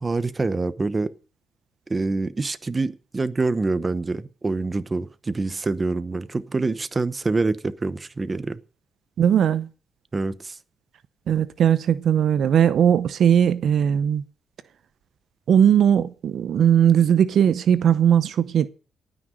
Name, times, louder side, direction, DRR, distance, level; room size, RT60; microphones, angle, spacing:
voice 1, 0.0-1.1 1.9-8.6 10.1-10.6, right 3 dB, 25° right, 0.9 m, -26 dB
voice 2, 9.2-9.7 11.3-14.2 15.5-18.7, right 9 dB, 65° right, 0.7 m, -18 dB
18.5 x 6.3 x 6.4 m
cardioid pair, 110°, 0 cm